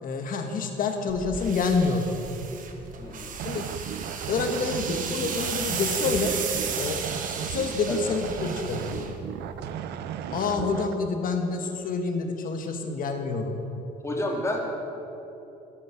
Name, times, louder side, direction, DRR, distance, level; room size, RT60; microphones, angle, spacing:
voice 1, 0.0-2.1 3.4-3.6 4.3-6.3 6.7-7.0 7.2-9.0 10.3-13.5, left 4 dB, 55° left, 5 dB, 1.6 m, -27 dB
sound 1, 1.1-9.7, right 6 dB, 50° right, 1.4 m, -34 dB
voice 2, 3.0-3.3 7.9-8.0 10.5-10.6 14.0-14.7, left 1 dB, 15° left, -1 dB, 2.4 m, -30 dB
sound 2, 3.3-10.9, right 9 dB, 75° right, 0.6 m, -35 dB
12.5 x 11.0 x 6.0 m, 3.0 s
cardioid pair, 110°, 17 cm